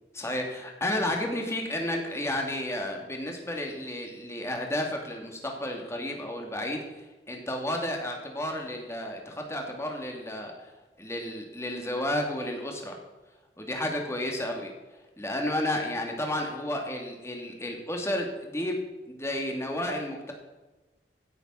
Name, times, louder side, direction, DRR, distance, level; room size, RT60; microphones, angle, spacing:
voice 1, 0.1-10.7 11.0-13.0 13.6-14.7 15.2-18.8 19.1-20.3, left 1 dB, 15° left, 2 dB, 2.6 m, -32 dB
16.5 x 8.2 x 5.8 m, 1.1 s
head